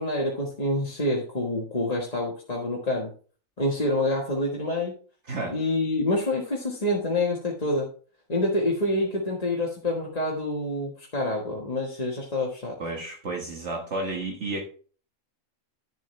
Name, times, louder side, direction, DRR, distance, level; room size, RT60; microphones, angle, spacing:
voice 1, 0.0-3.1 3.6-4.9 5.5-7.9 8.3-12.8, left 1 dB, 30° left, -3 dB, 1.5 m, -27 dB
voice 2, 12.8-14.6, right 2 dB, 55° right, 0 dB, 1.8 m, -31 dB
10.5 x 7.4 x 3.2 m, 0.40 s
omnidirectional pair, 1.4 m